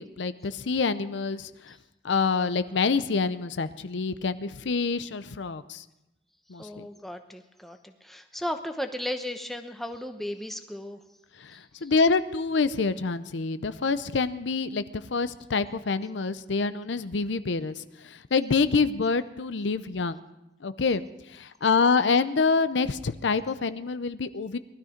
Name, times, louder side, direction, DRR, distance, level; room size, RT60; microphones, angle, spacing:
voice 1, 0.0-1.7 2.0-5.8 6.5-6.9 11.4-20.2 20.6-21.0 21.3-24.6, left 4 dB, 85° left, 13 dB, 0.6 m, -26 dB
voice 2, 6.6-11.0 11.5-11.9, left 1 dB, ahead, 6 dB, 0.9 m, -35 dB
19.5 x 12.5 x 5.1 m, 0.92 s
head